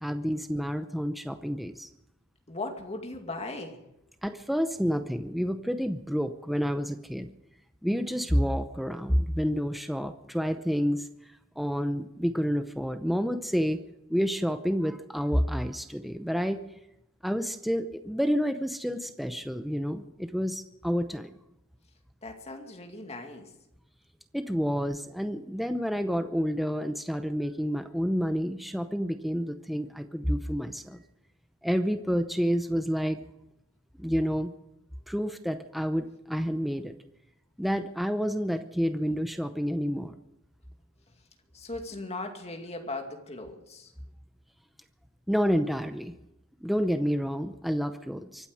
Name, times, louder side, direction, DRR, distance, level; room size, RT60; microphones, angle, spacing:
voice 1, 0.0-1.9 4.2-7.3 7.8-11.1 11.6-13.8 14.1-16.6 17.2-21.3 24.3-31.0 31.6-33.2 34.0-34.5 35.1-36.9 37.6-40.1 45.3-46.1 46.6-48.5, equal, ahead, 8 dB, 0.7 m, -29 dB
voice 2, 2.5-3.8 22.2-23.5 41.1-41.2 41.5-43.9, left 2 dB, 30° left, 3 dB, 2.3 m, -38 dB
24.5 x 8.9 x 6.4 m, 0.86 s
head